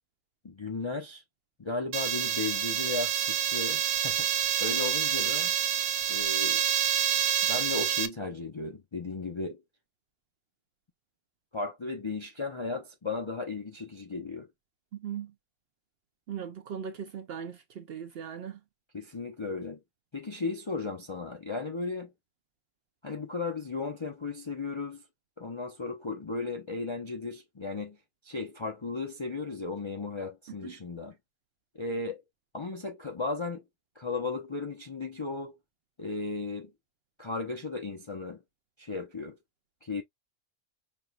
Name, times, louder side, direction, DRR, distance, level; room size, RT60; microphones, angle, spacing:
voice 1, 0.4-1.2 1.6-4.3 4.6-5.5 6.1-6.6 7.4-9.6 11.5-14.5 18.9-19.8 20.1-22.1 23.0-25.0 25.4-28.0 28.2-31.2 31.7-32.2 32.5-33.6 34.0-35.6 36.0-36.7 37.2-38.4 38.8-39.4 39.8-40.0, left 3 dB, 35° left, 0.4 m, -35 dB
sound 1, 1.9-8.1, right 10 dB, 90° right, 1.0 m, -27 dB
voice 2, 14.9-15.3 16.3-18.6 30.6-30.7, right 8 dB, 60° right, 0.7 m, -39 dB
5.3 x 3.0 x 2.2 m
omnidirectional pair, 1.4 m